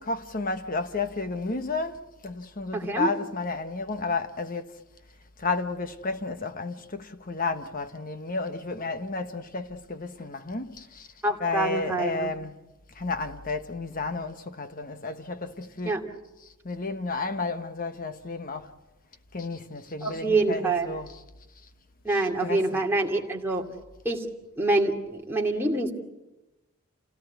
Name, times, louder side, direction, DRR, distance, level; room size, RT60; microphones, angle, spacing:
voice 1, 0.0-4.8 5.4-11.1 11.4-12.6 12.9-16.0 16.4-18.7 19.3-21.2 22.1-22.9, left 3 dB, 40° left, 1.3 m, -32 dB
voice 2, 2.7-3.1 11.2-12.3 15.8-16.0 20.0-20.9 22.0-23.7 24.0-24.3 24.6-25.9, right 2 dB, 10° right, 2.5 m, -26 dB
28.5 x 17.5 x 8.3 m
head